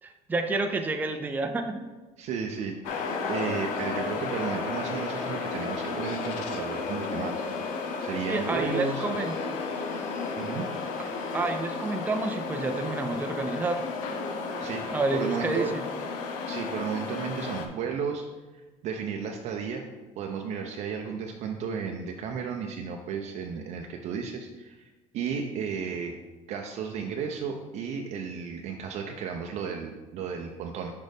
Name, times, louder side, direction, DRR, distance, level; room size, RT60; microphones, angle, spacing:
voice 1, 0.0-1.8 8.2-9.4 11.0-11.1 11.3-13.8 14.9-15.8, right 2 dB, 15° right, 5 dB, 0.5 m, -29 dB
voice 2, 2.2-7.4 8.0-9.0 10.4-10.7 14.6-15.8 16.5-18.2 18.5-19.8 20.2-26.1 26.5-30.9, right 6 dB, 60° right, 2 dB, 0.6 m, -33 dB
sound 1, 2.8-17.7, left 4 dB, 90° left, 0.8 m, -33 dB
6.4 x 5.2 x 3.5 m, 1.2 s
cardioid pair, 125°, 13 cm